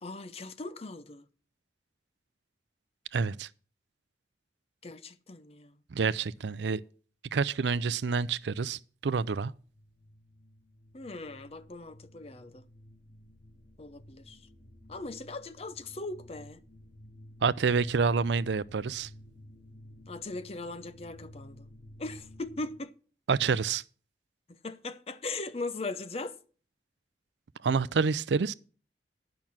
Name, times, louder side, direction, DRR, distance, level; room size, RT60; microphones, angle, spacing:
voice 1, 0.0-1.3 4.8-5.8 10.9-12.6 13.8-14.5 14.9-16.6 20.1-21.7 22.0-22.9 24.5-26.4, left 3 dB, 35° left, 0.7 m, -39 dB
voice 2, 3.1-3.5 5.9-6.8 7.3-9.5 17.4-19.1 23.3-23.8 27.6-28.5, right 5 dB, 80° right, 0.5 m, -28 dB
sound 1, 9.5-22.8, left 1 dB, 75° left, 1.4 m, -53 dB
10.5 x 6.0 x 7.3 m
head